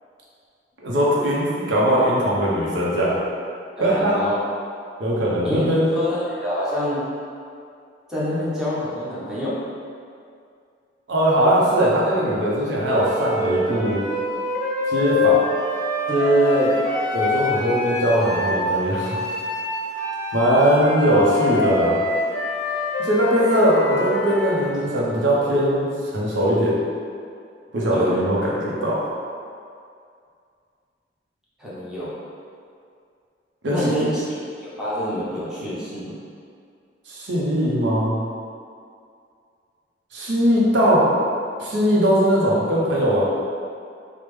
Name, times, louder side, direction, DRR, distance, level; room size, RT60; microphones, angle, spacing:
voice 1, 0.8-3.2 3.8-4.2 5.0-5.9 11.1-14.0 14.9-15.4 17.1-19.2 20.3-22.0 23.0-26.8 27.7-29.0 33.6-34.1 37.1-38.2 40.1-41.1 41.6-43.2, equal, 75° right, -5 dB, 0.6 m, -20 dB
voice 2, 3.8-4.4 5.4-7.0 8.1-9.6 16.1-16.8 27.9-28.1 31.6-32.1 33.7-34.2 34.6-36.1, equal, 5° right, -10 dB, 0.7 m, -25 dB
Wind instrument woodwind instrument, 12.8-18.6 19.0-24.7, left 2 dB, 45° left, 0.6 m, -25 dB
3.3 x 2.1 x 3.1 m, 2.3 s
head